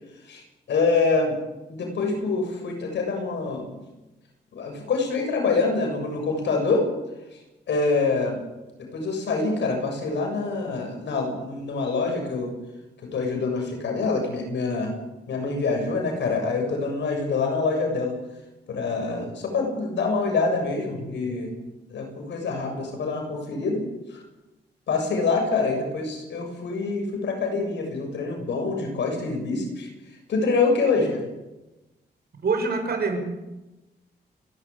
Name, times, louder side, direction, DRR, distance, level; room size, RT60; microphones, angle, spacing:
voice 1, 0.3-1.4 1.7-3.8 4.5-6.9 7.3-7.4 7.7-8.4 8.8-12.5 13.0-15.0 15.3-18.2 18.7-21.6 21.9-24.2 24.9-29.9 30.3-31.3, left 3 dB, 85° left, 3 dB, 7.0 m, -26 dB
voice 2, 32.4-33.2, right 4 dB, 60° right, 4 dB, 6.4 m, -24 dB
29.5 x 12.5 x 8.4 m, 1.0 s
cardioid pair, 65°, 18 cm